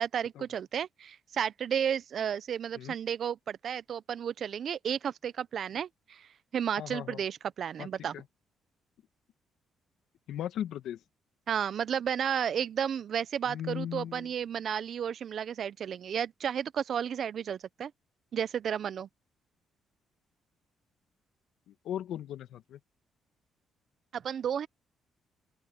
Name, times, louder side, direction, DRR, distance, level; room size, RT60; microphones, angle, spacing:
voice 1, 0.0-8.1 11.5-17.9 18.3-19.1 24.1-24.7, right 8 dB, 60° right, 0.6 m, -32 dB
voice 2, 6.8-7.2 7.8-7.9 8.1-8.2 10.3-11.0 13.4-14.3 21.7-22.8, left 10 dB, 80° left, 1.6 m, -37 dB
open air
cardioid pair, 90°, 0 cm